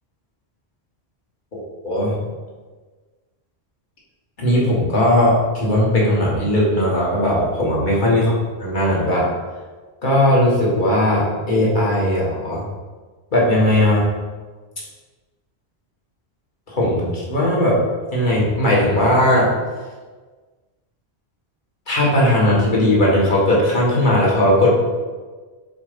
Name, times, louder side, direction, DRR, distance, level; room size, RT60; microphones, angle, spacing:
voice 1, 1.5-2.2 4.4-8.3 8.6-9.3 10.0-12.7 13.3-14.1 16.7-17.8 18.1-19.5 21.9-24.8, left 1 dB, 45° left, -4 dB, 1.6 m, -18 dB
4.9 x 3.9 x 5.0 m, 1.4 s
omnidirectional pair, 1.1 m